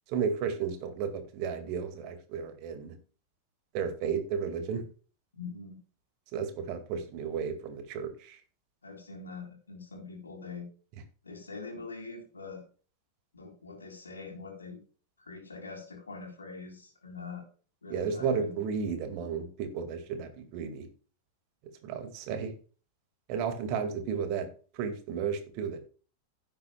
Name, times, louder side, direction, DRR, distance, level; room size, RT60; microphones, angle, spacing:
voice 1, 0.1-2.9 3.7-4.8 6.3-8.4 17.9-20.9 21.8-22.5 23.3-24.5 24.7-25.8, right 6 dB, 45° right, 7 dB, 2.0 m, -33 dB
voice 2, 5.3-5.8 8.8-10.7 11.2-12.6 13.3-14.8 15.2-17.4 17.8-18.6, left 4 dB, 75° left, 1 dB, 3.7 m, -43 dB
16.0 x 7.8 x 2.3 m, 0.38 s
figure-of-eight pair, 90°, 0 cm